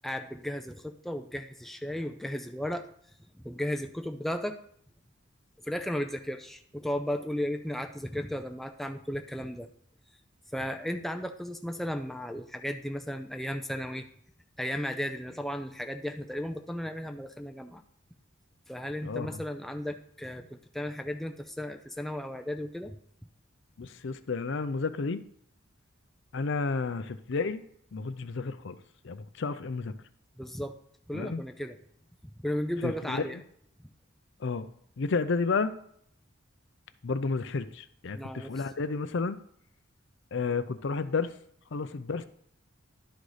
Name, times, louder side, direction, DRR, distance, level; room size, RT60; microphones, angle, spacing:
voice 1, 0.0-2.9 3.3-4.6 5.6-9.7 10.5-14.1 14.6-17.8 18.7-23.0 30.4-30.8 31.1-31.8 32.4-33.4 38.1-38.6, equal, ahead, 5 dB, 0.4 m, -35 dB
voice 2, 19.0-19.4 23.8-25.2 26.3-27.6 27.9-28.8 29.0-29.9 31.1-31.4 32.8-33.3 34.4-34.7 35.0-35.7 37.0-39.4 40.3-41.3 41.7-42.2, left 4 dB, 60° left, 12 dB, 0.5 m, -31 dB
11.5 x 4.0 x 4.9 m, 0.66 s
head